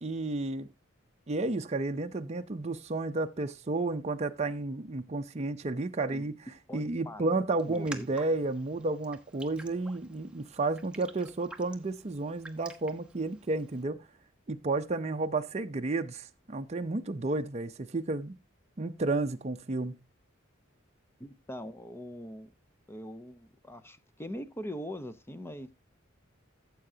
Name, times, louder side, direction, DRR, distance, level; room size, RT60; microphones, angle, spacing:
voice 1, 0.0-0.7 1.3-6.3 6.7-14.0 14.5-18.4 18.8-20.0, right 2 dB, 35° right, 0.6 m, -32 dB
voice 2, 6.7-7.2 7.7-8.1 21.2-22.5 22.9-25.7, equal, 10° left, 0.7 m, -42 dB
Raindrop, 7.6-13.8, right 2 dB, 5° right, 1.0 m, -50 dB
14.0 x 7.6 x 2.8 m
head